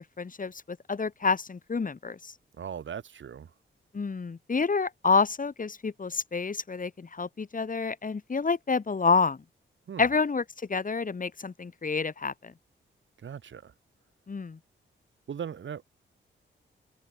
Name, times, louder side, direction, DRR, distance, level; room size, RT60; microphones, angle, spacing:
voice 1, 0.0-2.3 3.9-9.4 10.0-10.4 10.7-12.5 14.3-14.6, left 4 dB, 40° left, 4.8 m, -28 dB
voice 2, 2.6-3.5 9.9-10.1 13.2-13.7 15.3-15.9, right 8 dB, 70° right, 2.7 m, -38 dB
cardioid pair, 90°, 20 cm